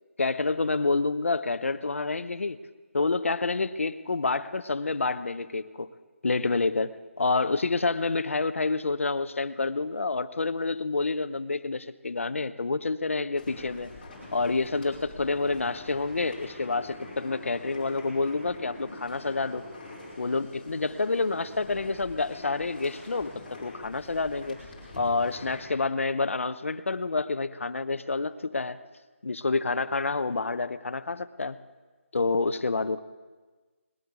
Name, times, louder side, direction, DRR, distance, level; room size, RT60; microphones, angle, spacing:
voice 1, 0.2-2.6 2.9-5.9 6.2-13.9 14.3-19.6 20.2-24.6 25.0-28.8 29.2-31.6 32.1-33.0, left 3 dB, 70° left, 13 dB, 0.8 m, -28 dB
sound 1, 13.4-25.6, left 2 dB, 5° left, 3.7 m, -44 dB
20.0 x 8.6 x 8.1 m, 1.3 s
hypercardioid pair, 180°, 7 cm